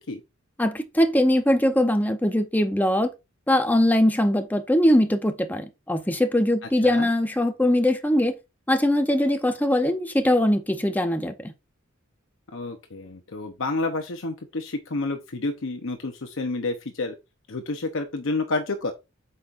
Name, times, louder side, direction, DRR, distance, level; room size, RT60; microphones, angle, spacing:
voice 1, 0.6-3.1 3.5-8.3 8.7-11.5, left 1 dB, 10° left, 0.7 m, -21 dB
voice 2, 12.5-17.1 17.5-18.9, left 3 dB, 65° left, 0.8 m, -29 dB
8.3 x 5.6 x 2.5 m
head